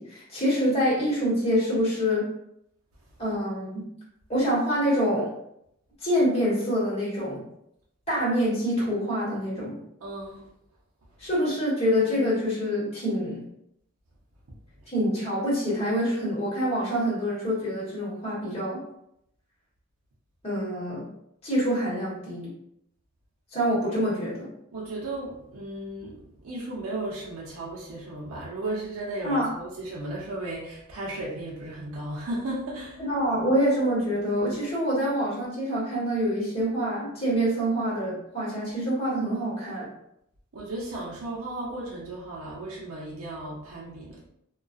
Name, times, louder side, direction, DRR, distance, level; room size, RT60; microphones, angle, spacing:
voice 1, 0.0-2.3 3.2-3.9 4.3-5.3 6.0-7.5 8.1-9.8 11.2-13.4 14.9-18.8 20.4-21.1 21.4-22.5 23.5-24.5 29.2-29.5 33.0-39.9, equal, 30° left, -8 dB, 1.2 m, -26 dB
voice 2, 10.0-10.4 14.5-14.6 24.7-33.0 40.5-44.2, right 2 dB, 85° right, -5 dB, 0.6 m, -35 dB
2.3 x 2.2 x 2.5 m, 0.77 s
head